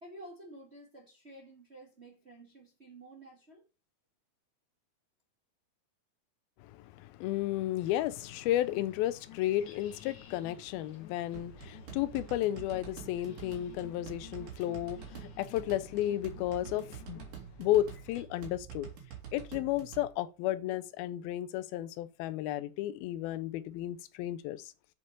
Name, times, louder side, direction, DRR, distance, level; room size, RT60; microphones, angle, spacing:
voice 1, 0.0-3.6, right 1 dB, 30° right, 1.3 m, -51 dB
voice 2, 6.6-17.2 17.6-18.9 19.3-24.7, left 13 dB, 85° left, 2.6 m, -33 dB
sound 1, 7.8-18.2, left 4 dB, 50° left, 2.8 m, -57 dB
sound 2, 8.7-17.4, left 13 dB, 70° left, 2.0 m, -54 dB
sound 3, 11.3-20.1, right 9 dB, 60° right, 4.2 m, -47 dB
8.0 x 7.5 x 5.4 m
omnidirectional pair, 4.2 m